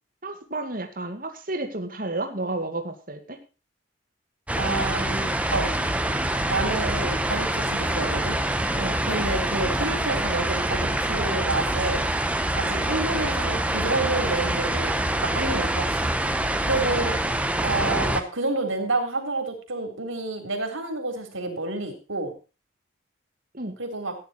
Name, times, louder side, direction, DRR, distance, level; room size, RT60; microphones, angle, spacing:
voice 1, 0.2-3.4 8.7-9.0 23.5-23.7, right 2 dB, 45° right, 5 dB, 2.1 m, -31 dB
sound 1, 4.5-18.2, right 1 dB, 5° right, 1.0 m, -25 dB
voice 2, 4.6-5.7 6.5-8.4 9.0-12.0 12.5-14.9 15.2-16.1 16.6-17.2 17.6-22.3 23.8-24.1, right 2 dB, 85° right, 5 dB, 3.7 m, -29 dB
14.5 x 10.0 x 4.4 m, 0.32 s
head